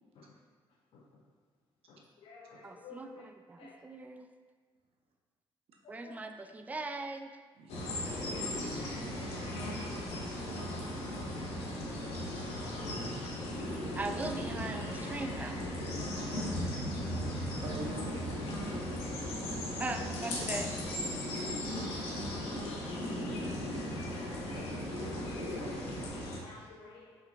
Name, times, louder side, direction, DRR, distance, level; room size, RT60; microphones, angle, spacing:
voice 1, 1.9-3.3 3.6-3.8 6.0-6.2 8.6-9.5 13.4-13.6 16.2-16.4 16.8-17.6 19.6-20.1 20.4-20.5 25.1-25.2 25.6-25.7 26.4-27.2, left 4 dB, 60° left, -2 dB, 0.5 m, -54 dB
voice 2, 2.6-4.3 5.9-7.3 13.9-15.6 19.8-20.7, right 2 dB, 15° right, 6 dB, 0.3 m, -39 dB
voice 3, 7.5-8.0 17.6-18.8 24.5-26.2, right 3 dB, 70° right, 0 dB, 0.8 m, -47 dB
sound 1, 7.7-26.4, left 1 dB, 85° left, 0.9 m, -37 dB
5.6 x 3.8 x 2.3 m, 1.5 s
cardioid pair, 90°, 10 cm